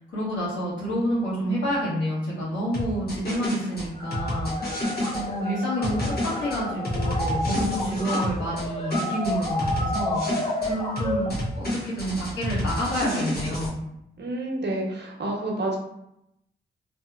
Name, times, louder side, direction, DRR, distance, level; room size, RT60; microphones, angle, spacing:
voice 1, 0.1-4.8 5.1-6.0 6.4-13.8, equal, 85° left, -7 dB, 1.3 m, -29 dB
sound 1, 2.7-5.2 5.8-8.7 8.9-10.7 11.0-13.7, left 1 dB, 55° left, 1.2 m, -29 dB
sound 2, 4.0-11.3, left 1 dB, 30° left, 0.6 m, -31 dB
voice 2, 14.2-15.8, right 2 dB, 65° right, -2 dB, 0.9 m, -29 dB
2.8 x 2.6 x 2.4 m, 0.80 s
cardioid pair, 45°, 19 cm